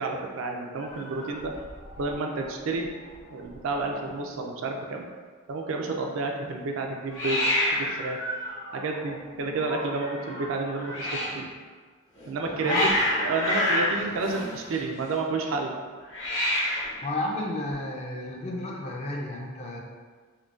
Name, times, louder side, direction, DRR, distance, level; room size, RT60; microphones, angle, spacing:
voice 1, 0.0-1.5 2.0-2.9 3.3-5.1 5.5-8.2 8.7-11.5 12.3-12.9 13.2-15.8, right 3 dB, 65° right, 2 dB, 0.4 m, -30 dB
Hiss, 0.8-2.2 2.4-2.9 3.1-3.2 3.4-4.1 7.1-11.4 12.2-15.1 16.0-17.0, left 1 dB, 60° left, 0.8 m, -30 dB
voice 2, 17.0-19.8, left 2 dB, 30° left, -1 dB, 0.4 m, -31 dB
3.7 x 2.1 x 2.4 m, 1.5 s
head